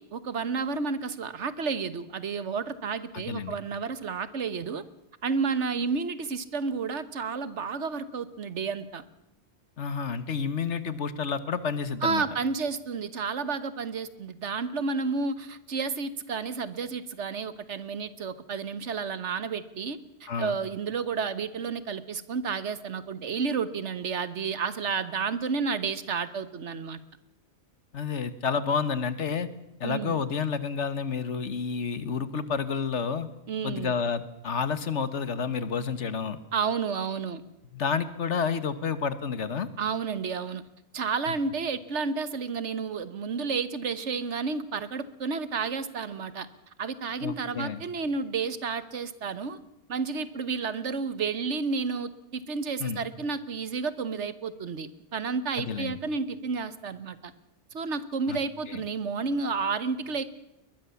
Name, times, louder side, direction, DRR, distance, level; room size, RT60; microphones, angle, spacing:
voice 1, 0.0-4.8 5.2-9.0 12.0-27.0 29.8-30.2 33.5-33.9 36.5-37.4 39.8-40.6 40.9-46.5 46.8-49.6 49.9-57.3 57.7-60.2, right 5 dB, 75° right, 14 dB, 1.5 m, -31 dB
voice 2, 3.1-3.6 9.8-12.2 20.3-20.6 27.9-29.5 29.8-33.3 33.6-36.4 37.7-39.7 47.2-47.8 52.8-53.1 55.6-56.0 58.3-58.4 58.7-58.8, left 6 dB, 80° left, 13 dB, 1.6 m, -30 dB
21.5 x 21.0 x 7.1 m, 0.87 s
omnidirectional pair, 1.2 m